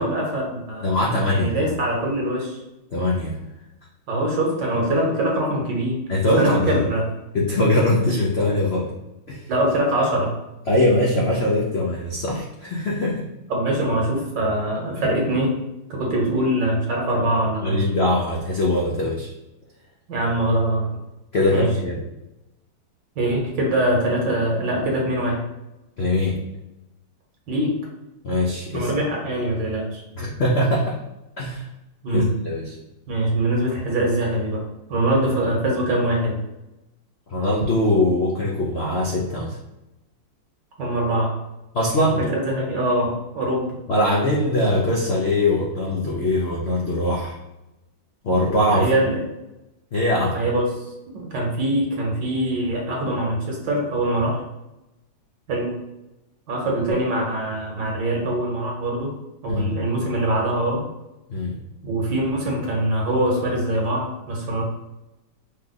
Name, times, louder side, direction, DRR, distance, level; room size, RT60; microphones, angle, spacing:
voice 1, 0.0-0.9 1.3-2.6 4.1-6.0 6.4-7.1 9.5-10.4 13.5-15.6 15.9-17.8 20.1-20.9 21.5-21.7 23.2-25.4 27.5-27.8 28.7-30.0 32.0-32.3 33.1-34.6 34.9-36.4 40.8-41.4 42.2-43.8 48.7-49.2 50.3-50.8 51.1-54.4 55.5-55.8 56.5-59.1 59.4-60.8 61.8-64.6, right 1 dB, 60° right, -2 dB, 1.9 m, -23 dB
voice 2, 0.8-1.6 2.9-3.4 6.1-6.8 7.3-8.9 9.3-9.5 10.7-13.3 17.2-17.3 17.6-19.3 21.3-22.0 26.0-26.4 28.2-28.9 30.2-31.0 31.4-31.7 32.1-32.8 37.3-39.6 41.7-42.2 43.9-47.4 48.2-48.9 49.9-50.4 59.5-59.8 61.3-61.6, left 1 dB, 70° left, -3 dB, 0.6 m, -22 dB
5.6 x 2.4 x 4.0 m, 0.95 s
omnidirectional pair, 2.2 m